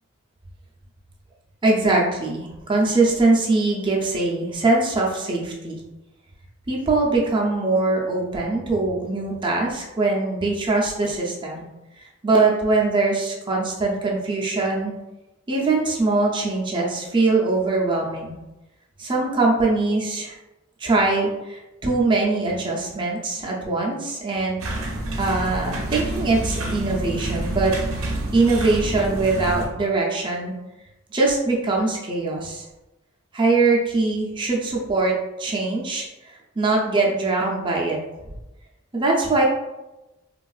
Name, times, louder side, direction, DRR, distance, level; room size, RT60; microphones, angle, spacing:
voice 1, 1.6-5.8 6.7-11.7 12.0-14.9 15.5-18.4 19.0-20.4 20.8-24.6 25.2-27.7 28.3-30.5 31.1-32.6 33.3-38.0 38.9-39.4, right 3 dB, 20° right, -2 dB, 0.5 m, -22 dB
sound 1, 24.6-29.7, right 1 dB, 70° right, 0.5 m, -28 dB
3.4 x 2.3 x 2.3 m, 1.0 s
head